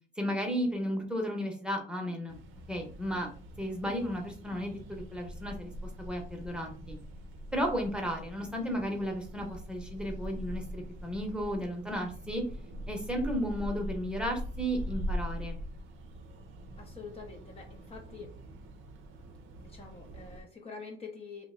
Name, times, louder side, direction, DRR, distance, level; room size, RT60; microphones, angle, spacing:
voice 1, 0.2-2.4 2.7-3.3 3.6-5.7 6.0-7.0 7.5-12.4 12.9-15.6, equal, 5° right, 1 dB, 0.8 m, -34 dB
sound 1, 2.3-20.4, equal, 80° right, 0.5 m, -42 dB
voice 2, 16.8-18.3 19.6-21.5, left 5 dB, 30° left, 0 dB, 0.6 m, -46 dB
2.7 x 2.1 x 3.6 m, 0.44 s
cardioid pair, 90°, 20 cm